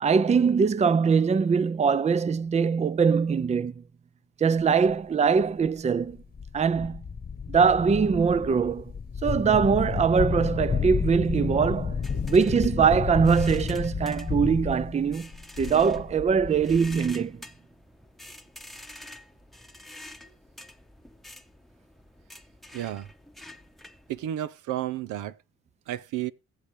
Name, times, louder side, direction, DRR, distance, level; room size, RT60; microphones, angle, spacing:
voice 1, 0.0-3.8 4.4-6.2 6.5-7.0 7.5-8.8 9.2-12.0 12.3-15.3 15.6-17.4, right 6 dB, 25° right, 0.5 m, -22 dB
sound 1, 4.9-5.0 5.7-5.8 6.1-17.1, left 6 dB, 30° left, 1.1 m, -31 dB
sound 2, 12.0-24.3, left 1 dB, ahead, 0.9 m, -48 dB
voice 2, 22.7-23.1 24.1-25.4 25.9-26.3, right 12 dB, 90° right, 0.8 m, -32 dB
20.5 x 7.0 x 3.1 m
cardioid pair, 90°, 30 cm